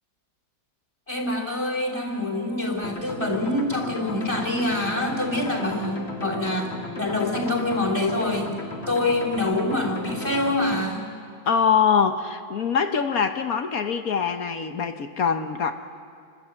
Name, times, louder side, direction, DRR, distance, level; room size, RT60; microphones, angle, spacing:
voice 1, 1.1-8.5 8.9-11.1, left 2 dB, 15° left, 1 dB, 3.3 m, -26 dB
sound 1, 2.8-10.8, left 2 dB, 35° left, 2.1 m, -35 dB
voice 2, 11.5-15.7, left 6 dB, 55° left, 7 dB, 1.2 m, -23 dB
27.5 x 13.0 x 8.3 m, 2.3 s
omnidirectional pair, 2.1 m